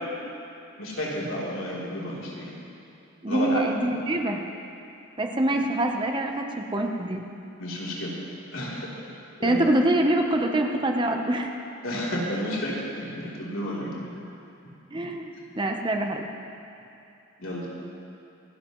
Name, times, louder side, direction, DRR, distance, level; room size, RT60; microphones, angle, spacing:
voice 1, 0.8-2.5 3.3-3.6 5.5-5.6 7.6-8.1 8.5-8.9 9.4-9.6 11.8-13.9 14.9-15.1 17.4-17.6, equal, 80° left, -6 dB, 3.3 m, -31 dB
voice 2, 3.2-4.4 5.2-7.2 9.4-11.5 14.9-16.3, right 1 dB, 25° right, 3 dB, 0.8 m, -25 dB
27.5 x 11.0 x 3.1 m, 2.7 s
head